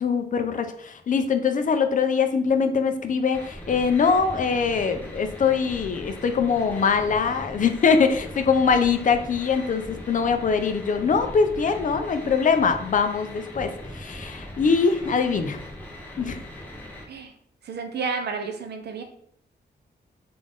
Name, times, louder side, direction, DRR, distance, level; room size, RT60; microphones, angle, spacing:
voice 1, 0.0-15.6 16.2-16.4, left 5 dB, 45° left, 7 dB, 0.4 m, -23 dB
sound 1, 3.3-17.0, left 1 dB, 10° left, 0.7 m, -40 dB
voice 2, 17.6-19.0, right 5 dB, 70° right, 5 dB, 0.6 m, -31 dB
3.7 x 2.5 x 3.6 m, 0.65 s
wide cardioid pair, 145°, 18 cm